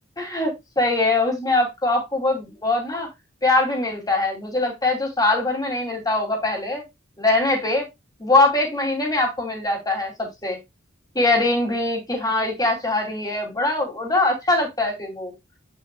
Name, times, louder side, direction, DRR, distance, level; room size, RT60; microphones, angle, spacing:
voice 1, 0.2-3.1 3.4-6.8 7.2-7.9 8.2-10.6 11.1-15.3, left 2 dB, 20° left, 2.6 m, -22 dB
8.5 x 6.7 x 2.2 m
head